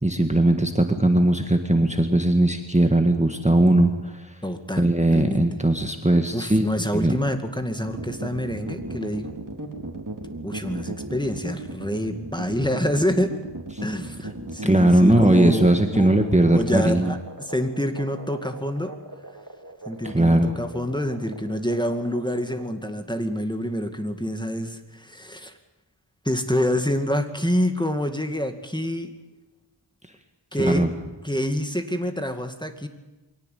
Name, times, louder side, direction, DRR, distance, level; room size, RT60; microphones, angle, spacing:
voice 1, 0.0-4.3 4.8-6.7 6.9-7.1 14.6-17.1 20.0-20.6 30.6-30.9, right 1 dB, 15° right, 5 dB, 1.7 m, -19 dB
voice 2, 4.4-4.9 5.1-5.5 6.3-9.3 10.4-13.4 13.8-16.1 16.4-18.9 19.9-25.5 26.2-29.1 30.5-30.9 31.2-32.9, equal, 10° left, 6 dB, 2.2 m, -27 dB
sound 1, 7.9-22.7, right 2 dB, 40° right, 3.9 m, -37 dB
23.0 x 17.5 x 9.3 m, 1.1 s
wide cardioid pair, 50°, 48 cm